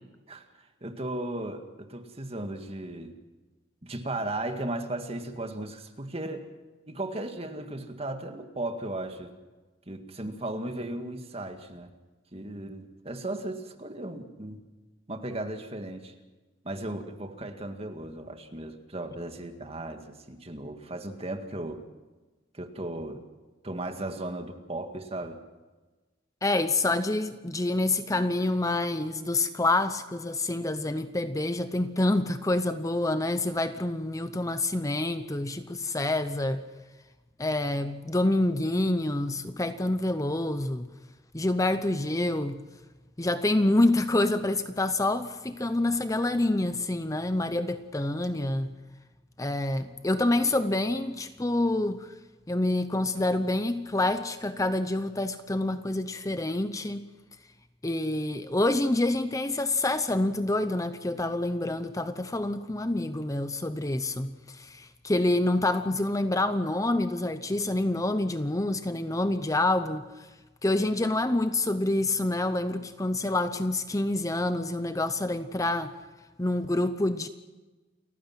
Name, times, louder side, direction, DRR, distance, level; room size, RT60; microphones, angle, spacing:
voice 1, 0.8-3.1 3.8-6.5 6.9-9.3 9.9-11.9 12.3-14.6 15.1-16.1 16.6-21.8 22.5-23.2 23.6-25.4, right 1 dB, 35° right, 2.0 m, -36 dB
voice 2, 26.4-36.6 37.4-40.9 41.3-42.6 43.2-48.7 49.4-52.1 52.5-57.0 57.8-70.0 70.6-75.9 76.4-77.3, left 2 dB, 20° left, 0.8 m, -27 dB
29.5 x 15.5 x 6.1 m
head